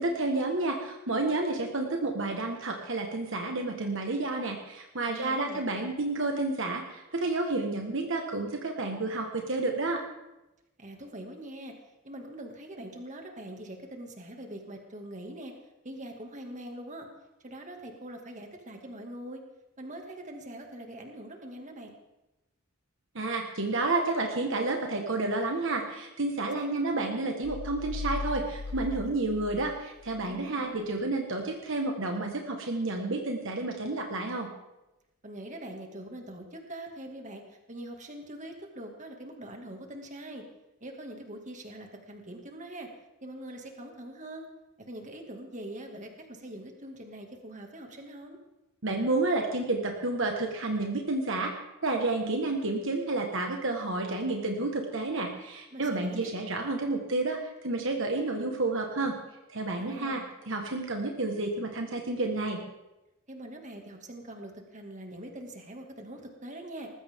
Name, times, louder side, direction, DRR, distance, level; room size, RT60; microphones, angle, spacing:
voice 1, 0.0-10.0 23.1-34.5 48.8-51.5 51.8-59.2 59.5-62.6, right 2 dB, 60° right, 2 dB, 1.6 m, -30 dB
voice 2, 5.1-5.6 10.8-11.7 12.0-15.5 15.8-17.1 17.4-19.4 19.8-21.9 26.4-27.1 30.2-31.0 35.2-40.4 40.8-42.9 43.2-44.5 44.9-48.4 55.7-56.3 59.8-60.3 63.3-66.9, right 1 dB, 35° right, 3 dB, 2.2 m, -43 dB
sound 1, 27.4-30.3, left 3 dB, 70° left, 1.0 m, -38 dB
19.5 x 15.0 x 3.7 m, 0.98 s
head